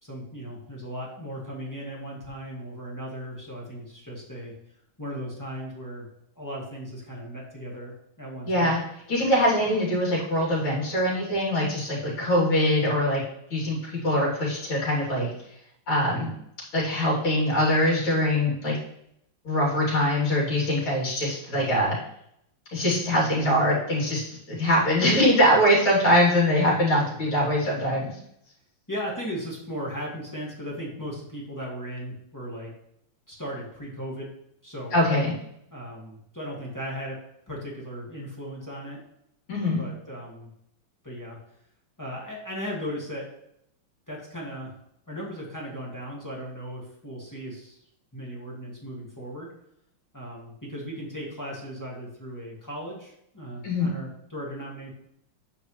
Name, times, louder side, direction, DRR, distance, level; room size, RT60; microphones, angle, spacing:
voice 1, 0.0-4.5 5.0-6.1 6.3-8.7 28.9-32.7 33.3-34.3 34.6-34.9 35.7-37.2 37.5-39.0 39.8-40.5 41.0-41.4 42.0-43.3 44.1-44.7 45.1-47.8 48.1-49.5 50.1-54.9, equal, 10° left, -4 dB, 1.5 m, -37 dB
voice 2, 8.5-8.8 9.1-13.2 13.5-15.3 15.9-16.3 16.7-18.8 19.4-22.0 22.7-28.1 34.9-35.3 39.5-39.9 53.6-53.9, equal, 70° left, -5 dB, 3.8 m, -23 dB
8.5 x 5.2 x 3.1 m, 0.75 s
omnidirectional pair, 2.3 m